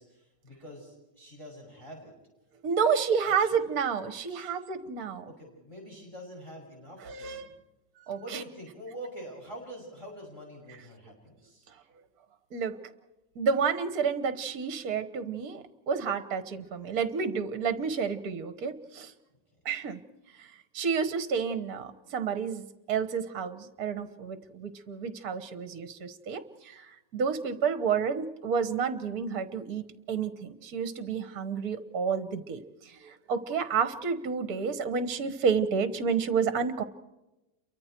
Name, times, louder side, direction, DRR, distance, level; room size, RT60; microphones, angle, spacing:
voice 1, 0.0-2.1 2.8-3.5 4.3-4.5 5.3-7.5 8.2-11.7, equal, 15° left, 0 dB, 6.2 m, -46 dB
voice 2, 2.6-5.3 7.0-7.5 8.1-8.4 12.5-12.8 13.3-19.1 19.6-20.0 20.4-36.8, right 6 dB, 55° right, 11 dB, 1.7 m, -30 dB
29.5 x 23.5 x 4.5 m, 1.0 s
omnidirectional pair, 2.0 m